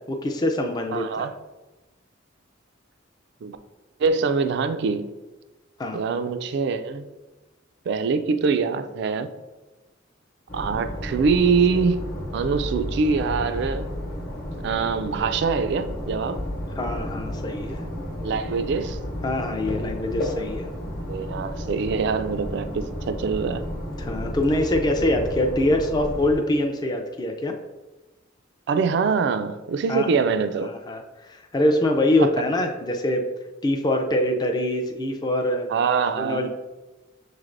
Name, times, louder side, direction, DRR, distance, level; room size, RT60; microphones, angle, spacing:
voice 1, 0.1-1.3 5.8-6.0 16.7-17.8 19.2-20.7 24.0-27.5 29.9-30.1 30.6-33.3 33.6-35.7 36.2-36.5, left 1 dB, 20° left, 0.3 m, -24 dB
voice 2, 0.9-1.3 3.4-3.6 4.0-5.1 5.9-7.1 7.9-9.3 10.5-12.0 12.3-13.9 14.6-16.4 18.2-19.0 21.1-23.7 28.7-30.7 32.2-32.3 35.7-36.5, right 5 dB, 60° right, 0.3 m, -24 dB
sound 1, 10.5-26.4, equal, 50° left, 0.9 m, -32 dB
6.3 x 3.2 x 2.5 m
head